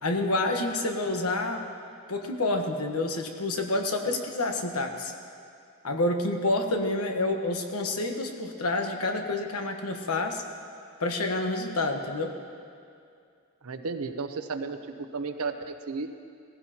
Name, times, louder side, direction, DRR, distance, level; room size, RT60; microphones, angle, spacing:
voice 1, 0.0-1.6 2.1-5.1 5.8-10.4 11.0-12.3, left 2 dB, 80° left, 4 dB, 1.2 m, -28 dB
voice 2, 13.6-14.8 15.1-16.1, right 4 dB, 75° right, 8 dB, 0.7 m, -33 dB
17.5 x 15.0 x 2.9 m, 2.4 s
head